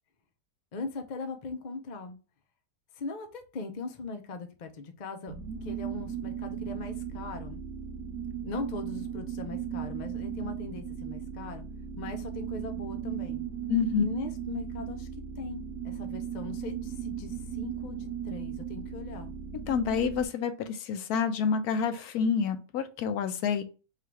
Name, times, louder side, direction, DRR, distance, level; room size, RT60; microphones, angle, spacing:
voice 1, 0.7-2.2 2.9-5.3 5.6-7.6 8.4-11.6 12.0-13.4 14.0-15.1 15.4-19.3, left 3 dB, 55° left, 6 dB, 0.5 m, -39 dB
sound 1, 5.3-20.3, right 8 dB, 85° right, 1.3 m, -37 dB
voice 2, 13.7-14.0 19.7-23.6, left 7 dB, 80° left, 9 dB, 1.1 m, -28 dB
3.7 x 2.5 x 4.4 m, 0.33 s
omnidirectional pair, 1.6 m